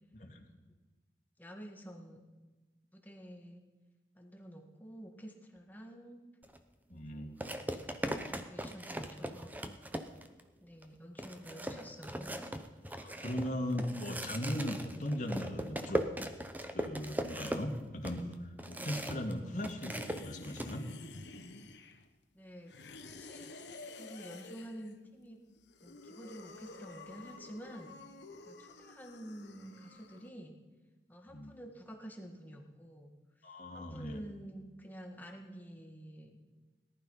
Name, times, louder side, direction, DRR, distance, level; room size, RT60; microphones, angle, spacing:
voice 1, 0.1-0.5 6.9-7.3 13.0-16.1 16.7-20.9 31.3-31.5 33.4-34.3, left 1 dB, 45° left, 1 dB, 2.2 m, -38 dB
voice 2, 1.4-2.2 2.9-3.6 4.2-6.2 6.9-9.5 10.6-12.4 22.3-23.5 24.0-25.4 25.8-27.9 28.5-30.6 31.1-33.1 33.7-36.4, equal, 10° left, 2 dB, 1.8 m, -49 dB
sound 1, 6.4-6.6 7.4-10.4 10.8-10.9 11.2-19.3 19.6-20.7, right 1 dB, 10° right, 0.8 m, -39 dB
sound 2, 19.9-22.1 22.7-24.9 25.6-30.3, left 3 dB, 80° left, 1.2 m, -50 dB
18.5 x 11.5 x 5.6 m, 1.2 s
head